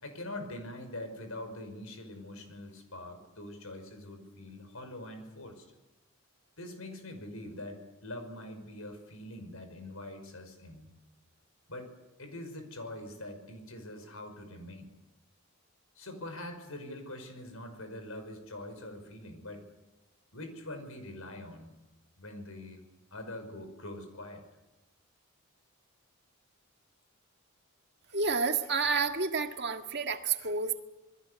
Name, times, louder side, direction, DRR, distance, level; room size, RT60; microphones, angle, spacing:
voice 1, 0.0-5.7 6.6-10.9 11.7-11.9 12.2-14.9 16.0-19.7 20.3-21.7 22.2-22.8 23.1-24.4, left 1 dB, 80° left, 7 dB, 5.7 m, -44 dB
voice 2, 28.1-30.8, right 4 dB, 50° right, 6 dB, 1.8 m, -30 dB
28.0 x 21.0 x 8.2 m, 1.0 s
head